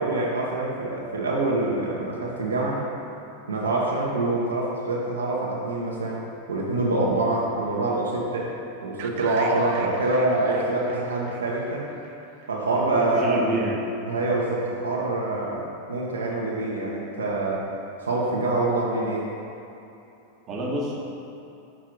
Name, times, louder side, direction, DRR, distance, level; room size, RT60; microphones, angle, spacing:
voice 1, 0.0-2.9 3.5-6.2 6.5-8.5 8.8-11.9 12.5-13.5 14.1-17.6 18.0-19.3, right 2 dB, 85° right, -4 dB, 0.9 m, -25 dB
sound 1, 9.0-12.9, right 5 dB, 55° right, 0.5 m, -40 dB
voice 2, 12.8-13.9 20.5-21.0, right 1 dB, 35° right, -3 dB, 1.1 m, -28 dB
6.3 x 3.7 x 4.7 m, 2.8 s
hypercardioid pair, 95°, 0 cm